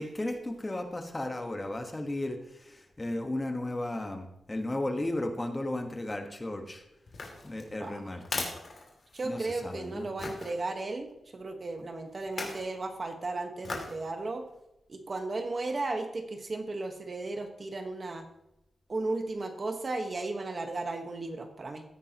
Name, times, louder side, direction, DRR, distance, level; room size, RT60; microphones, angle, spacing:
voice 1, 0.0-6.8 7.4-8.5 9.2-10.1, left 1 dB, 20° left, 5 dB, 1.3 m, -35 dB
sound 1, 7.1-9.5 10.2-10.5 12.2-12.7 13.6-14.0 14.5-14.6, left 3 dB, 55° left, 2.6 m, -38 dB
voice 2, 7.8-8.2 9.1-11.1 11.3-14.4 14.9-18.3 18.9-21.8, right 2 dB, 40° right, 5 dB, 1.3 m, -35 dB
15.5 x 9.6 x 3.0 m, 0.86 s
wide cardioid pair, 100°, 0 cm